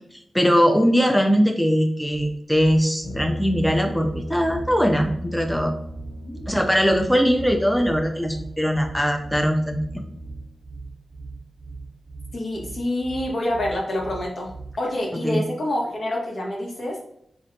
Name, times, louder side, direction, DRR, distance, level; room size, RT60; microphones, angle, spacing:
voice 1, 0.1-5.8 6.5-10.0 15.2-15.4, equal, 5° left, 4 dB, 0.5 m, -21 dB
Brass instrument, 3.0-10.5, left 1 dB, 85° left, 0.6 m, -37 dB
sound 1, 3.0-14.9, right 3 dB, 40° right, 0.8 m, -40 dB
voice 2, 6.2-6.6 12.3-17.0, left 1 dB, 65° left, -2 dB, 1.1 m, -27 dB
4.2 x 2.5 x 2.6 m, 0.72 s
cardioid pair, 40°, 0 cm